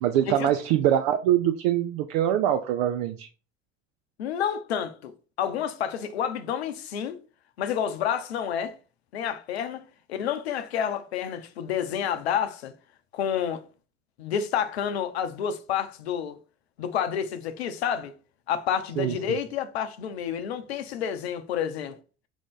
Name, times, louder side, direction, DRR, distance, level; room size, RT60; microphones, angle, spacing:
voice 1, 0.0-3.3 19.0-19.1, right 11 dB, 75° right, 0.5 m, -23 dB
voice 2, 4.2-5.1 5.4-7.2 7.6-8.8 9.1-9.8 10.1-12.7 13.1-13.6 14.2-16.4 16.8-18.1 18.5-22.0, left 8 dB, 90° left, 0.5 m, -29 dB
5.0 x 2.6 x 3.6 m
hypercardioid pair, 60°, 31 cm